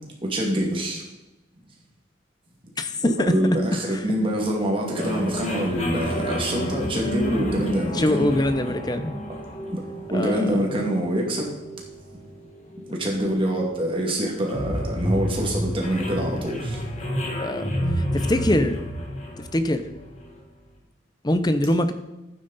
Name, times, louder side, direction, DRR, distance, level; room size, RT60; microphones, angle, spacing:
voice 1, 0.2-1.0 3.0-8.3 9.7-9.8 10.1-11.5 12.8-16.8, equal, 25° right, -1 dB, 2.3 m, -25 dB
voice 2, 2.8-3.3 3.9-4.0 7.9-9.2 10.1-10.9 17.4-17.7 18.1-18.8 19.5-19.8 21.2-21.9, left 1 dB, 20° left, 10 dB, 0.7 m, -23 dB
sound 1, 5.0-20.4, equal, 35° left, 1.8 m, -30 dB
11.5 x 9.2 x 4.1 m, 0.96 s
head